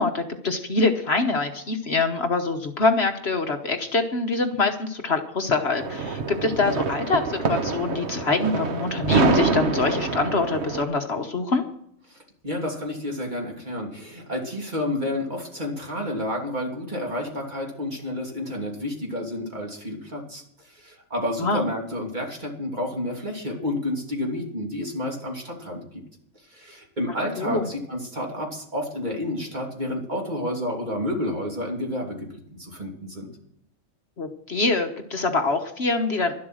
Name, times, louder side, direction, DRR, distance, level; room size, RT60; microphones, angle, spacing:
voice 1, 0.0-11.6 21.4-21.6 27.4-27.7 34.2-36.3, left 3 dB, 50° left, 5 dB, 1.3 m, -24 dB
sound 1, 5.8-10.8, right 3 dB, 55° right, 1.4 m, -25 dB
voice 2, 12.1-26.0 26.5-33.3, left 1 dB, 35° right, -1 dB, 3.1 m, -30 dB
12.0 x 12.0 x 6.3 m, 0.69 s
omnidirectional pair, 1.4 m